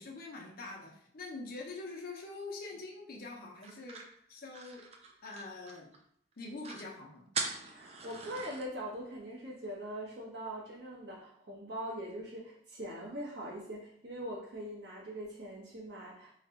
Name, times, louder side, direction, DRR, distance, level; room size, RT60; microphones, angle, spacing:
voice 1, 0.0-4.0 4.3-4.9 5.2-5.9 6.4-7.3, left 3 dB, 55° left, -1 dB, 0.7 m, -44 dB
sound 1, 3.6-6.0 6.3-6.4 6.6-6.9 7.3-8.7, right 4 dB, 35° right, 0.5 m, -41 dB
voice 2, 7.7-16.4, equal, 75° right, -4 dB, 1.2 m, -42 dB
3.2 x 2.3 x 3.9 m, 0.66 s
head